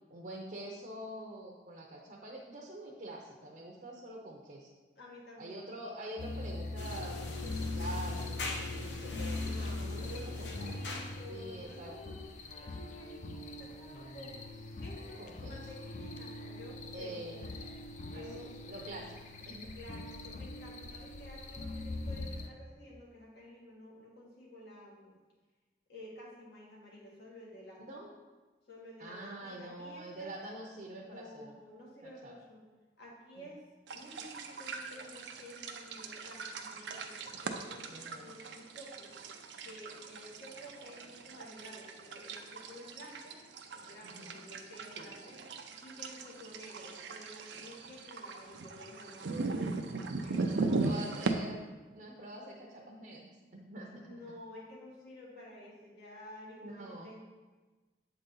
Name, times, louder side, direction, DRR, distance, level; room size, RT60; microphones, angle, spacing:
voice 1, 0.1-4.7 5.4-10.8 11.3-12.1 15.2-15.6 16.9-17.7 18.1-19.8 27.9-28.1 29.0-31.5 32.2-32.3 33.4-33.5 37.9-38.3 44.0-44.4 45.0-45.1 50.4-51.6 51.9-54.1 56.6-57.1, right 1 dB, 50° right, -1 dB, 0.7 m, -46 dB
voice 2, 5.0-5.7 6.2-6.5 9.1-12.3 12.6-14.4 14.8-17.3 18.1-18.5 19.7-25.2 25.9-27.8 28.7-30.3 31.0-32.6 33.0-33.6 33.9-39.1 39.6-43.4 43.7-45.4 45.8-51.2 53.9-57.2, left 1 dB, 65° left, -4 dB, 1.8 m, -51 dB
sound 1, 6.2-22.5, left 2 dB, 40° left, 0.4 m, -42 dB
sound 2, 6.8-11.4, left 3 dB, 80° left, 0.7 m, -42 dB
sound 3, 33.9-51.3, right 3 dB, 85° right, 0.5 m, -39 dB
7.6 x 3.9 x 3.8 m, 1.3 s
head